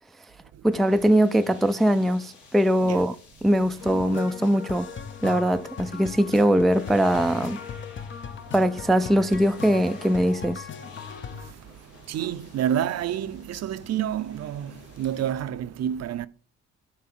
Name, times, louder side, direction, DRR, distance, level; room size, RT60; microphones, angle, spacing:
voice 1, 0.6-3.2 3.4-4.9 5.2-7.6 8.5-10.7, equal, ahead, 0.4 m, -21 dB
sound 1, 0.7-15.3, left 4 dB, 75° left, 2.2 m, -50 dB
sound 2, 3.8-11.5, left 6 dB, 40° left, 0.7 m, -38 dB
voice 2, 11.3-16.3, right 10 dB, 55° right, 0.6 m, -29 dB
9.3 x 3.4 x 6.0 m
cardioid pair, 90°, 30 cm